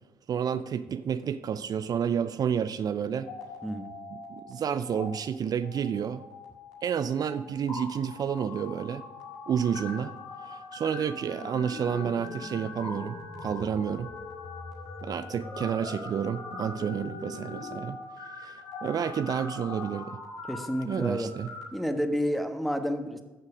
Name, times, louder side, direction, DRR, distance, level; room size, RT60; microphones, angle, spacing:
voice 1, 0.3-3.3 4.3-6.2 6.8-9.0 9.5-10.1 10.5-14.1 15.0-18.0 18.4-20.2 20.8-21.5, right 8 dB, 45° right, 13 dB, 0.5 m, -30 dB
sound 1, 3.1-4.5 4.8-5.1 5.6-21.6, left 3 dB, 75° left, 1.9 m, -41 dB
voice 2, 3.6-3.9 20.5-21.3 21.7-23.2, equal, ahead, 6 dB, 1.3 m, -30 dB
14.5 x 6.4 x 5.0 m, 1.1 s
hypercardioid pair, 45°, 9 cm